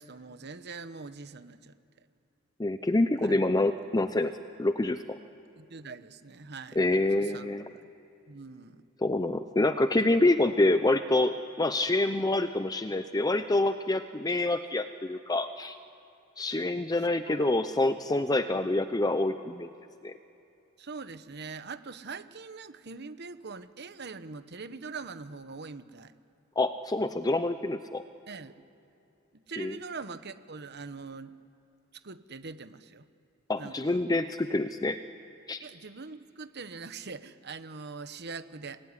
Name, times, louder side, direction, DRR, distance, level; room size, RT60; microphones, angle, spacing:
voice 1, 0.0-1.7 3.2-3.4 5.6-7.9 8.3-8.8 16.9-17.6 18.5-18.8 20.8-26.1 28.3-28.5 29.5-31.3 31.9-33.1 33.6-34.0 35.6-38.8, right 4 dB, 55° right, 11 dB, 1.1 m, -43 dB
voice 2, 2.6-4.3 4.6-5.2 6.8-7.6 9.0-15.8 16.4-19.7 20.0-20.1 26.6-28.0 29.6-29.8 33.5-35.0 35.5-35.6, left 2 dB, 20° left, 10 dB, 0.6 m, -27 dB
28.0 x 20.0 x 9.9 m, 2.9 s
head